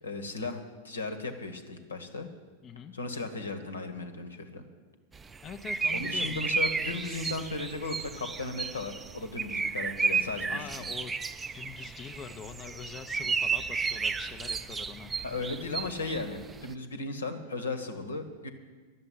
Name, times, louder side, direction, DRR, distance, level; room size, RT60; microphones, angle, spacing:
voice 1, 0.0-2.3 2.9-4.6 5.9-10.7 15.2-18.5, left 3 dB, 75° left, 8 dB, 1.3 m, -36 dB
voice 2, 2.6-2.9 5.4-6.4 10.5-11.2 11.5-15.1, left 7 dB, 25° left, 6 dB, 0.6 m, -44 dB
sound 1, 5.1-16.7, right 5 dB, 15° right, 0.4 m, -33 dB
11.5 x 7.6 x 9.9 m, 1.4 s
figure-of-eight pair, 90°, 0 cm